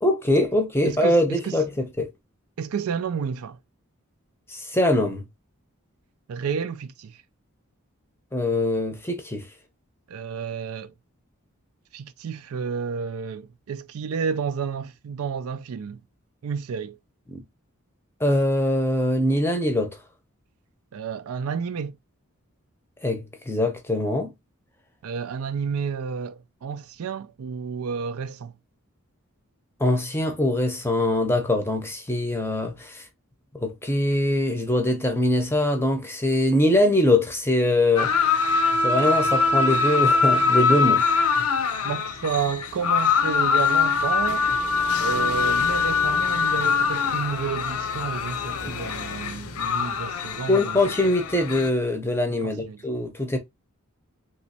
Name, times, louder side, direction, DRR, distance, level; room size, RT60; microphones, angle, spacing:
voice 1, 0.0-2.1 4.5-5.2 8.3-9.5 18.2-20.0 23.0-24.3 29.8-33.0 33.6-38.1 38.8-41.0 50.5-53.4, left 1 dB, 10° left, 0.6 m, -23 dB
voice 2, 0.8-1.6 2.6-3.6 6.3-7.2 10.1-10.9 11.9-16.0 16.4-17.0 20.9-22.0 25.0-28.5 41.8-44.5 45.0-50.8 52.3-52.8, right 6 dB, 75° right, 0.4 m, -31 dB
sound 1, 38.0-51.7, left 4 dB, 80° left, 0.6 m, -23 dB
3.1 x 3.0 x 2.8 m
head